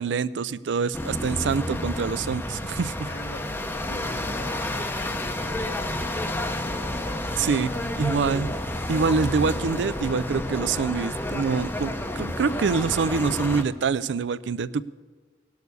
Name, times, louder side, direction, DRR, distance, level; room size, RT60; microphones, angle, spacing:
voice 1, 0.0-3.1 7.4-7.7 8.0-8.5 8.9-14.8, right 5 dB, 75° right, 18 dB, 0.4 m, -25 dB
sound 1, 0.9-13.6, left 1 dB, 10° left, 0.7 m, -30 dB
voice 2, 3.0-3.6 3.9-6.6 7.7-7.9, left 1 dB, 75° left, 1 dB, 2.0 m, -45 dB
18.0 x 6.5 x 6.8 m, 1.4 s
head